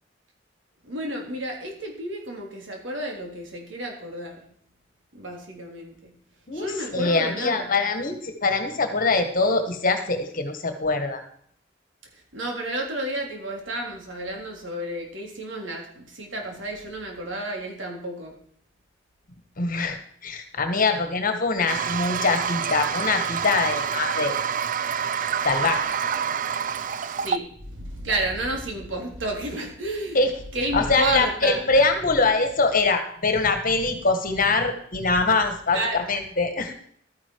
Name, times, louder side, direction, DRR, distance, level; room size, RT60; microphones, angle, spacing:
voice 1, 0.8-4.4 5.1-6.1 6.5-7.7 12.3-18.3 20.9-21.0 27.2-30.2 30.5-31.7 35.7-36.0, right 1 dB, 85° right, 1 dB, 3.5 m, -31 dB
voice 2, 6.5-11.2 19.6-24.4 25.4-25.8 30.1-30.3 30.7-36.7, left 3 dB, 50° left, 7 dB, 1.7 m, -23 dB
Toilet flush, 21.7-27.4, right 7 dB, 45° right, 0.4 m, -27 dB
12.5 x 9.7 x 4.8 m, 0.63 s
head